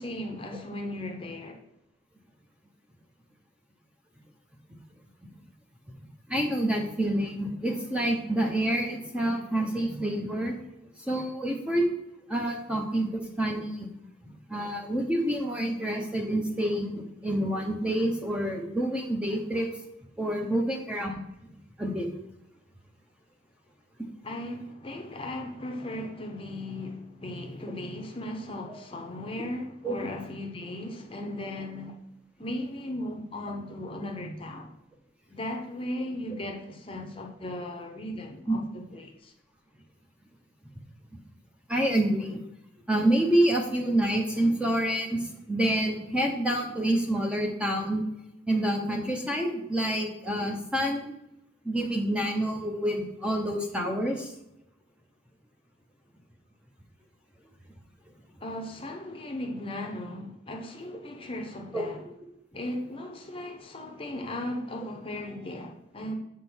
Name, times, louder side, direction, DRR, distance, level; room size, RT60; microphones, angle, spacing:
voice 1, 0.0-1.6 24.2-32.0 32.4-34.7 35.3-39.3 58.4-62.0 62.5-66.1, left 1 dB, 25° left, 0.8 m, -37 dB
voice 2, 6.3-10.6 11.0-11.8 12.3-13.9 14.5-19.7 20.2-21.2 21.8-22.1 29.8-30.0 38.5-38.6 41.7-42.4 42.9-48.0 48.5-51.1 51.6-54.3 61.7-61.8, right 1 dB, 5° right, 0.8 m, -27 dB
7.9 x 3.7 x 6.1 m
head